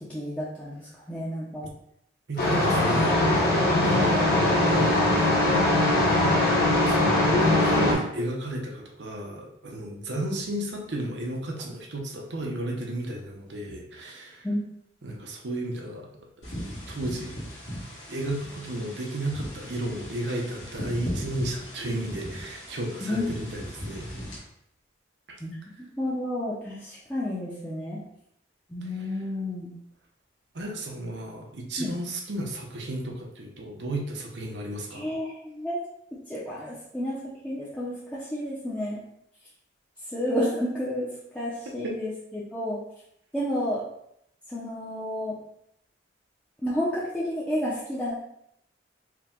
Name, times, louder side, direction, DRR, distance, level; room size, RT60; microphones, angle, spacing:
voice 1, 0.1-1.7 3.7-4.2 14.4-14.6 23.1-23.2 25.4-28.0 28.7-29.7 31.8-31.9 34.9-35.8 36.1-39.0 40.1-42.8 43.3-43.8 44.5-45.4 46.6-48.1, left 1 dB, 5° left, -9 dB, 0.6 m, -31 dB
voice 2, 2.3-3.2 3.8-4.3 4.6-5.5 6.7-14.5 15.0-16.1 16.9-17.4 18.1-24.1 25.3-25.4 28.8-29.1 30.5-35.1 41.8-42.0, right 1 dB, 75° right, 1 dB, 0.7 m, -33 dB
sound 1, 2.4-7.9, left 1 dB, 55° left, 1.1 m, -21 dB
sound 2, 16.4-24.4, equal, 80° left, 1.6 m, -38 dB
4.7 x 2.2 x 3.6 m, 0.74 s
head